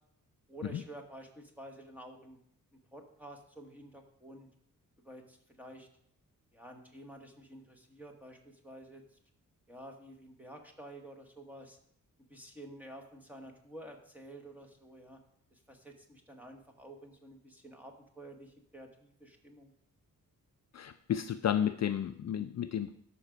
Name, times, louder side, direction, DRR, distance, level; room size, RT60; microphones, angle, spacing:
voice 1, 0.5-2.4 2.9-4.5 5.0-5.9 6.5-9.0 9.7-11.8 12.3-15.2 15.5-19.7, right 1 dB, 5° right, 3 dB, 1.2 m, -50 dB
voice 2, 20.7-23.1, left 9 dB, 55° left, 10 dB, 0.4 m, -32 dB
12.5 x 5.8 x 5.1 m, 0.67 s
wide cardioid pair, 180°, 34 cm